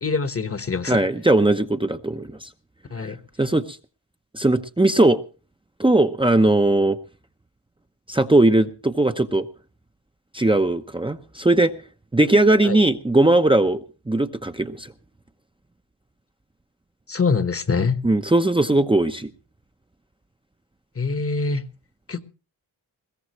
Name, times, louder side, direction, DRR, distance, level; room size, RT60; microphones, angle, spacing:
voice 1, 0.0-1.0 2.9-3.2 12.6-12.8 17.1-17.9 21.0-21.6 22.1-22.2, left 4 dB, 35° left, 1.2 m, -24 dB
voice 2, 0.9-2.3 3.0-3.1 3.4-3.8 4.3-5.2 5.8-7.0 8.1-9.5 10.3-11.7 12.1-13.8 14.1-14.9 18.0-19.3, right 2 dB, 15° right, 0.8 m, -19 dB
21.0 x 16.5 x 3.1 m
wide cardioid pair, 85°, 40 cm